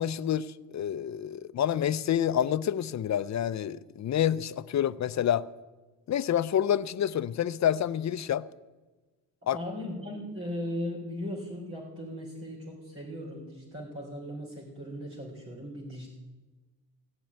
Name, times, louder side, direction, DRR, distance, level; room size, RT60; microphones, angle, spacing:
voice 1, 0.0-5.5 6.1-8.5 9.5-9.6, left 10 dB, 50° left, 0.5 m, -28 dB
voice 2, 9.5-16.1, left 1 dB, 35° right, 3.7 m, -38 dB
16.0 x 7.6 x 9.5 m
cardioid pair, 120°, 36 cm